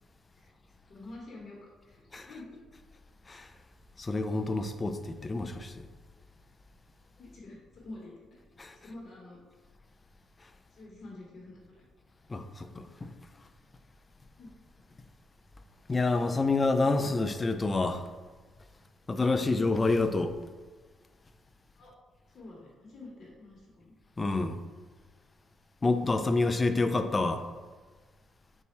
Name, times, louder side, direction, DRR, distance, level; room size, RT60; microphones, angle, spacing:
voice 1, 0.9-2.6 7.2-8.1 8.8-9.4 10.7-11.8 14.4-14.5 21.8-21.9 22.3-23.9, left 2 dB, 50° left, -3 dB, 1.0 m, -48 dB
voice 2, 4.0-5.9 8.6-8.8 12.3-13.1 15.9-18.0 19.1-20.4 24.2-24.6 25.8-27.5, left 3 dB, 25° left, 8 dB, 0.3 m, -28 dB
4.1 x 2.3 x 4.3 m, 1.4 s
cardioid pair, 90°, 0 cm